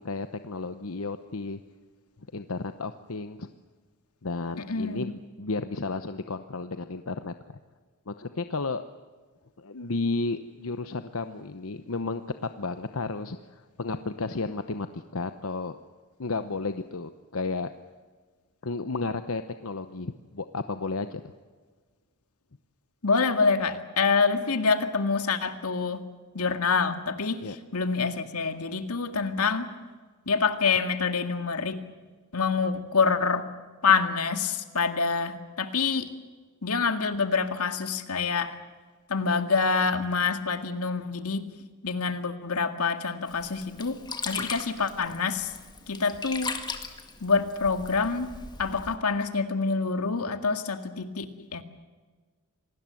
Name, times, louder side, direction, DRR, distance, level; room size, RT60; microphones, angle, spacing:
voice 1, 0.0-1.6 2.3-3.5 4.2-7.3 8.1-8.8 9.6-15.7 16.2-17.7 18.6-21.2 27.4-27.6, left 3 dB, 70° left, 9 dB, 0.9 m, -33 dB
voice 2, 4.7-5.1 23.0-26.0 26.3-29.7 30.3-31.8 32.3-33.4 33.8-36.1 36.6-38.6 39.1-41.5 41.8-44.0 44.3-45.5 45.9-46.5 47.2-48.3 48.6-51.3 51.5-51.6, left 5 dB, 90° left, 8 dB, 2.0 m, -26 dB
Sink (filling or washing), 43.3-49.0, left 4 dB, 20° left, 1.9 m, -38 dB
27.0 x 19.5 x 7.7 m, 1.4 s
head